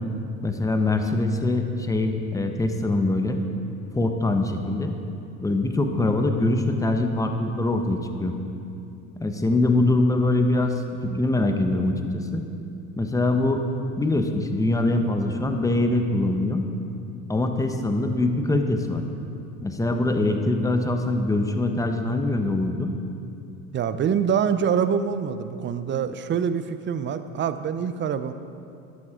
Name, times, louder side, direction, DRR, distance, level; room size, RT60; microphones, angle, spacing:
voice 1, 0.4-3.4 3.9-4.9 5.4-8.3 9.2-12.4 13.0-13.6 14.0-16.6 17.3-19.0 19.6-22.9, left 2 dB, 10° left, 5 dB, 1.0 m, -23 dB
voice 2, 23.7-28.3, right 7 dB, 25° right, 12 dB, 0.6 m, -25 dB
12.5 x 11.0 x 3.8 m, 2.7 s
hypercardioid pair, 80°, 42 cm